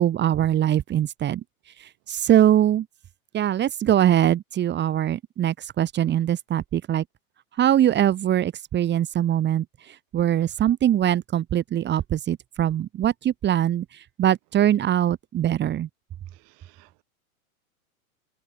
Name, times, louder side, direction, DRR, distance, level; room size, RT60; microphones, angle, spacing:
voice 1, 0.0-1.4 2.1-2.8 3.3-7.0 7.6-9.6 10.1-13.8 14.2-15.9, right 11 dB, 25° right, 3.4 m, -22 dB
voice 2, 16.5-17.0, right 40 dB or more, 45° right, 4.3 m, -58 dB
hypercardioid pair, 125°, 43 cm